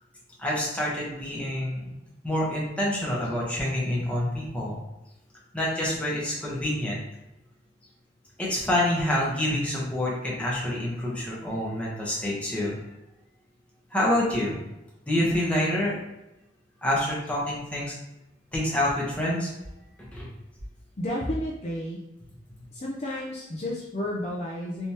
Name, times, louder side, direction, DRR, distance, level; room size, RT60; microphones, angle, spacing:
voice 1, 0.4-1.9 2.2-4.8 5.5-7.0 8.4-12.7 13.9-14.6 15.1-15.9 16.8-17.9 18.5-19.5 20.0-20.3, left 1 dB, 5° left, -5 dB, 1.0 m, -27 dB
voice 2, 21.0-22.0 22.7-24.9, left 1 dB, 35° left, -3 dB, 0.5 m, -31 dB
3.3 x 3.0 x 2.8 m, 0.92 s
head